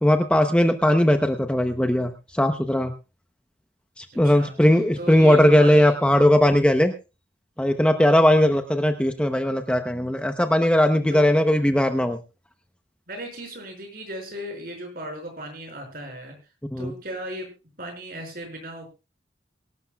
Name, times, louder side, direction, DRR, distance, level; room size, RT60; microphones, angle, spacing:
voice 1, 0.0-2.9 4.0-6.9 7.6-12.2 16.7-16.9, left 1 dB, 5° left, 6 dB, 0.8 m, -19 dB
voice 2, 4.1-4.5 5.0-6.0 11.1-11.3 13.1-16.3 16.8-17.5 17.8-18.9, right 1 dB, 50° right, 3 dB, 5.6 m, -36 dB
23.5 x 12.0 x 2.3 m, 0.30 s
head